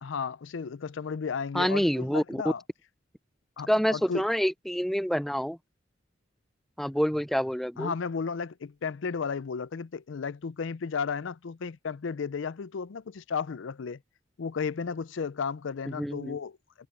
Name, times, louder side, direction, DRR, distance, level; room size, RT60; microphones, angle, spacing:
voice 1, 0.0-2.6 3.6-4.2 7.8-14.0 14.4-16.6, left 5 dB, 75° left, 0.5 m, -34 dB
voice 2, 1.5-2.4 3.7-5.6 6.8-7.9 15.9-16.4, equal, ahead, 0.4 m, -27 dB
head